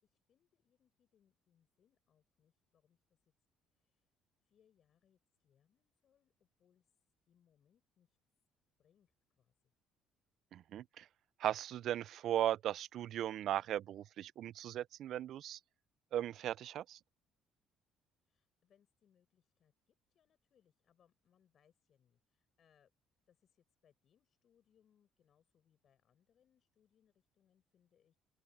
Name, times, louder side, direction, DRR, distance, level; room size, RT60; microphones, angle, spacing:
voice 1, 0.0-3.2 3.7-4.1 4.4-6.9 7.3-8.2 8.8-9.7 18.2-22.9 23.3-28.2, left 9 dB, 45° left, 6.0 m, -76 dB
voice 2, 10.5-11.1 11.4-15.6 16.1-17.0, right 11 dB, 60° right, 0.4 m, -37 dB
open air
cardioid pair, 125°, 0 cm